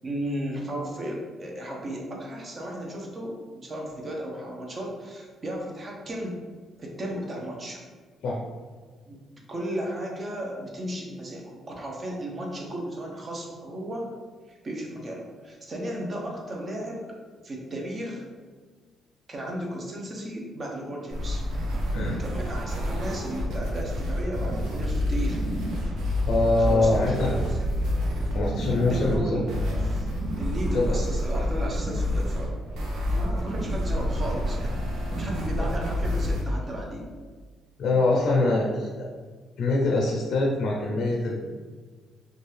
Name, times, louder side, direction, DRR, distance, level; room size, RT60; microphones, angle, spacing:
voice 1, 0.0-6.4 6.8-7.8 9.1-9.2 9.5-14.1 14.5-17.0 17.4-18.3 19.3-21.4 22.2-25.4 26.6-27.7 28.9-29.5 29.8-30.1 30.4-32.6 33.1-34.9 35.1-37.1, right 1 dB, 35° right, -1 dB, 0.7 m, -34 dB
sound 1, 21.1-36.4, equal, 80° right, 0.6 m, -28 dB
voice 2, 26.3-27.4 28.3-29.4 30.7-31.0 35.6-35.7 37.8-39.1 39.6-41.4, left 2 dB, 70° left, -2 dB, 0.5 m, -24 dB
2.6 x 2.3 x 3.2 m, 1.5 s
cardioid pair, 90°, 0 cm